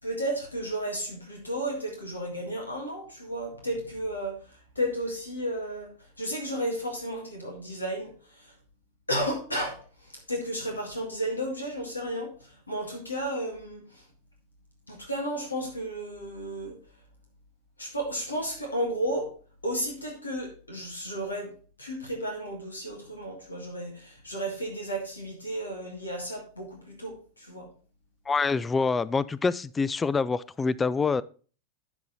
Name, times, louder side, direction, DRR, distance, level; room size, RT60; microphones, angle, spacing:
voice 1, 0.0-8.5 9.1-14.0 14.9-16.8 17.8-19.3 19.6-21.5 21.8-27.7, right 1 dB, 80° left, 1.9 m, -33 dB
voice 2, 28.3-31.2, left 4 dB, 15° left, 0.3 m, -26 dB
11.5 x 4.0 x 4.0 m
figure-of-eight pair, 90°, 0 cm